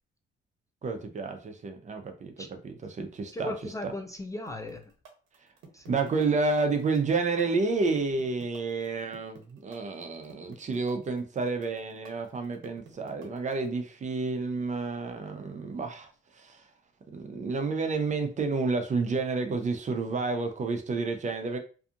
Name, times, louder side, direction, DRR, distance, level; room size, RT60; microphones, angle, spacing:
voice 1, 0.8-3.5 3.8-3.9 5.9-16.7 17.1-21.6, right 4 dB, 35° right, 0.6 m, -30 dB
voice 2, 3.3-4.9 5.7-6.0 6.2-6.4, left 2 dB, 15° left, 0.3 m, -37 dB
sound 1, 4.5-13.7, right 6 dB, 80° right, 0.8 m, -51 dB
2.7 x 2.4 x 2.4 m
cardioid pair, 90°, 20 cm